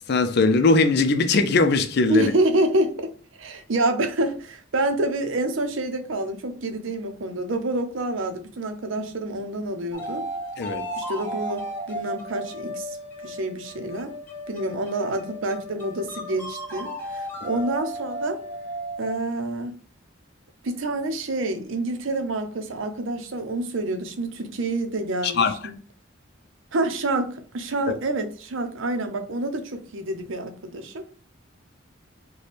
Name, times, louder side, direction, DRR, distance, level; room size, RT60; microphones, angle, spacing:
voice 1, 0.1-2.3 10.6-10.9 25.2-25.6, left 3 dB, 60° left, 0.5 m, -20 dB
voice 2, 2.1-10.3 11.0-13.0 13.2-14.1 14.5-18.4 19.0-19.7 20.6-25.8 26.7-31.1, right 1 dB, 85° right, 0.6 m, -27 dB
sound 1, 9.9-19.4, equal, 10° left, 0.8 m, -35 dB
3.3 x 2.2 x 4.1 m
head